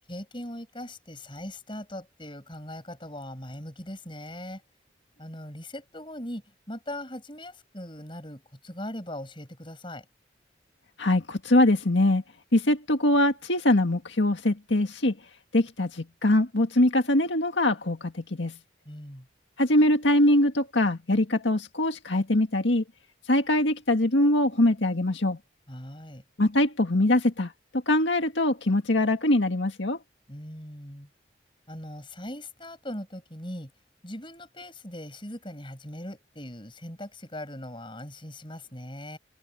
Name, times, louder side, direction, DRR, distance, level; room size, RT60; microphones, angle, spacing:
voice 1, 0.1-4.6 5.2-10.1 18.8-19.3 25.7-26.2 30.3-31.1 31.7-33.7 34.0-39.2, left 1 dB, 25° left, 6.1 m, -40 dB
voice 2, 11.0-12.2 12.5-15.2 15.5-18.6 19.6-22.8 23.3-25.4 26.4-30.0, left 1 dB, 80° left, 1.9 m, -23 dB
open air
head